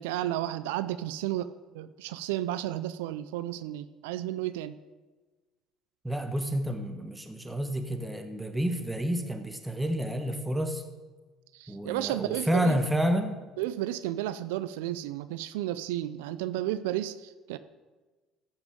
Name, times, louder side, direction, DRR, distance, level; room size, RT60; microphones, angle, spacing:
voice 1, 0.0-4.8 11.5-12.8 13.6-17.6, right 13 dB, 90° right, 14 dB, 0.3 m, -33 dB
voice 2, 6.0-10.8 11.7-13.5, equal, 10° right, 7 dB, 1.2 m, -29 dB
14.0 x 6.0 x 5.2 m, 1.3 s
supercardioid pair, 80°, 0 cm